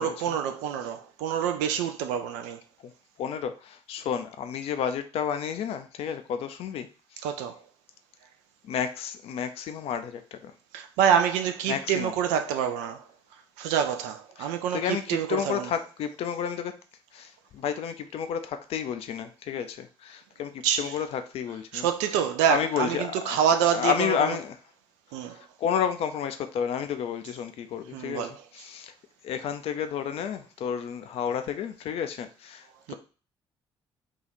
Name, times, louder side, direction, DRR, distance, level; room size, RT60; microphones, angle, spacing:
voice 1, 0.0-2.6 7.2-7.6 10.7-13.0 13.6-15.7 20.6-20.9 21.7-24.3 25.1-25.4 27.9-28.3 32.9-33.0, right 8 dB, 65° right, 0.4 m, -26 dB
voice 2, 3.2-6.9 7.1-7.3 8.7-10.5 11.7-12.1 14.4-16.7 17.1-21.9 22.1-22.2 22.5-24.6 25.6-28.9 29.2-32.9, left 8 dB, 50° left, 0.4 m, -31 dB
2.8 x 2.4 x 4.0 m
figure-of-eight pair, 45°, 13 cm